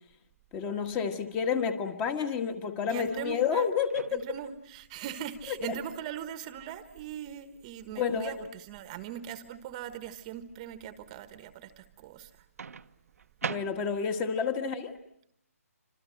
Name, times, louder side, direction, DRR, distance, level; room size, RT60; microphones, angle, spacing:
voice 1, 0.5-4.2 8.0-8.3 13.4-14.9, left 6 dB, 15° left, 8 dB, 1.6 m, -30 dB
voice 2, 2.8-3.7 4.1-12.4, right 10 dB, 25° right, 11 dB, 1.3 m, -40 dB
Microwave oven, 3.9-4.6 6.6-6.8 12.6-14.2, right 6 dB, 70° right, 1.1 m, -40 dB
28.5 x 26.0 x 7.8 m, 0.75 s
hypercardioid pair, 155°, 8 cm